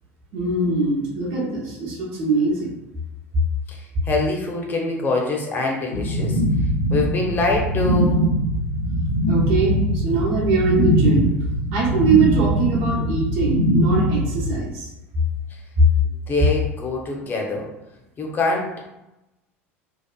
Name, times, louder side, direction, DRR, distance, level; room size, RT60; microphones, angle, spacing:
voice 1, 0.3-2.8 9.3-11.3 11.7-14.9, right 4 dB, 50° right, -4 dB, 0.9 m, -22 dB
voice 2, 3.7-6.4 6.9-8.2 16.0-17.7 18.2-18.7, left 2 dB, 25° left, 0 dB, 0.7 m, -24 dB
sound 1, 5.9-14.5, equal, 80° left, 0.4 m, -21 dB
2.8 x 2.3 x 2.2 m, 0.93 s
figure-of-eight pair, 70°, 7 cm